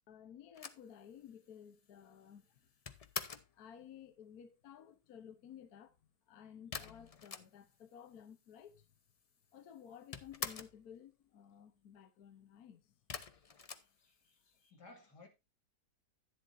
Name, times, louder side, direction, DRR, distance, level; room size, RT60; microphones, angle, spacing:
voice 1, 0.1-2.5 3.5-6.0 6.3-8.9 9.5-12.9, left 9 dB, 70° left, 1.3 m, -55 dB
sound 1, 0.5-3.6 6.7-7.9 8.2-8.3 8.4-9.2 9.5-10.8 13.1-14.6, left 5 dB, 50° left, 0.4 m, -46 dB
voice 2, 13.3-15.3, left 3 dB, 90° left, 2.8 m, -61 dB
11.5 x 10.0 x 2.6 m
omnidirectional pair, 1.7 m